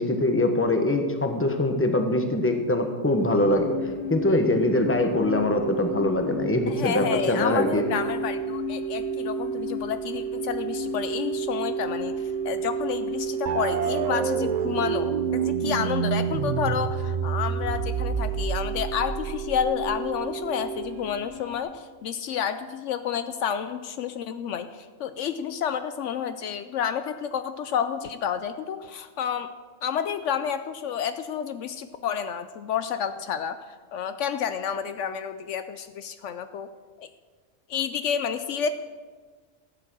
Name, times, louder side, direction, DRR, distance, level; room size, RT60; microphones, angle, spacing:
voice 1, 0.0-3.7 4.1-7.8, left 2 dB, 10° left, 5 dB, 1.0 m, -23 dB
sound 1, 3.2-21.6, right 3 dB, 40° right, 2.3 m, -31 dB
voice 2, 6.7-29.5 29.8-36.7 37.0-37.1 37.7-38.7, left 8 dB, 75° left, 11 dB, 0.9 m, -30 dB
sound 2, 13.5-20.1, right 7 dB, 60° right, 0.4 m, -29 dB
14.0 x 9.0 x 6.1 m, 1.5 s
omnidirectional pair, 1.3 m